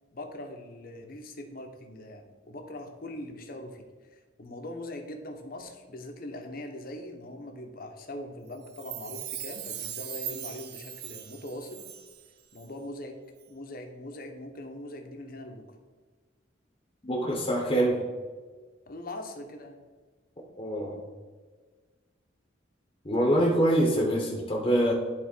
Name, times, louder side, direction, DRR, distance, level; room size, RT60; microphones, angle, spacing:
voice 1, 0.1-3.8 4.1-11.8 12.5-13.2 13.5-15.6 18.9-19.8, left 1 dB, 50° left, 4 dB, 1.0 m, -41 dB
Chime, 8.6-12.3 12.6-12.7, right 10 dB, 60° right, 0.6 m, -39 dB
voice 2, 17.0-18.0 20.6-21.0 23.0-24.9, right 1 dB, 30° left, -1 dB, 1.1 m, -25 dB
10.5 x 3.9 x 4.5 m, 1.4 s
head